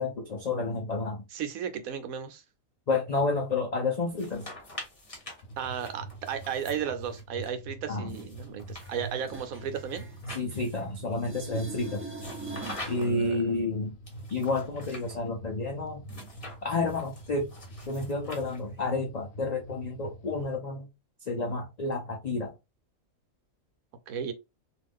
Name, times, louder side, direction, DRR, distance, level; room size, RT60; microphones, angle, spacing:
voice 1, 0.0-1.2 2.9-4.5 7.9-8.2 10.3-12.0 12.9-14.0 14.3-16.0 16.6-17.5 17.9-20.9 21.3-22.5, left 3 dB, 90° left, 0.3 m, -30 dB
voice 2, 1.3-2.4 5.6-10.1 12.9-13.4 24.1-24.3, right 8 dB, 80° right, 1.1 m, -34 dB
sound 1, 4.1-7.5 8.1-11.0 12.1-13.3 14.1-15.1 16.1-18.9, left 1 dB, 30° left, 0.8 m, -46 dB
sound 2, 5.4-20.6, right 2 dB, 60° left, 0.7 m, -44 dB
sound 3, 8.8-10.8 11.1-13.0 18.8-18.9, right 3 dB, 15° right, 0.4 m, -43 dB
2.5 x 2.4 x 3.4 m
omnidirectional pair, 1.5 m